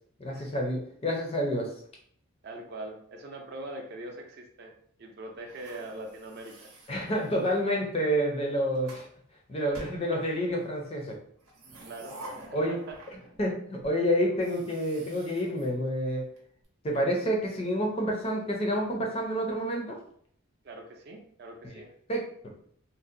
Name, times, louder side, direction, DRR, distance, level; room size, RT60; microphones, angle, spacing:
voice 1, 0.2-1.7 6.9-9.1 9.5-11.1 12.5-12.8 13.4-16.3 16.8-20.0 22.1-22.3, equal, 25° left, 0 dB, 0.4 m, -28 dB
voice 2, 2.4-4.7 5.0-6.7 11.8-13.0 20.6-21.9, right 2 dB, 50° right, 3 dB, 0.4 m, -42 dB
sound 1, 5.4-7.7 8.4-9.1 9.7-10.6 11.4-13.5 13.8-13.9 14.3-16.4, right 1 dB, 90° right, 0.7 m, -49 dB
2.6 x 2.0 x 2.5 m, 0.62 s
head